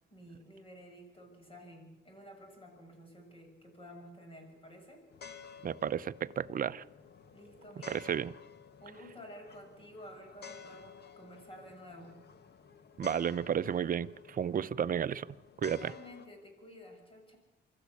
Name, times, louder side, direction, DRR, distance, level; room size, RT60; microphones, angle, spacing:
voice 1, 0.1-5.1 7.3-8.1 8.8-12.3 15.6-17.4, equal, 25° left, 4 dB, 6.8 m, -52 dB
sound 1, 5.1-16.3, left 6 dB, 55° left, 1.7 m, -53 dB
voice 2, 5.6-6.8 7.9-8.3 13.0-15.3 15.6-15.9, right 8 dB, 45° right, 14 dB, 0.7 m, -32 dB
25.0 x 14.0 x 8.6 m, 1.1 s
cardioid pair, 90°, 20 cm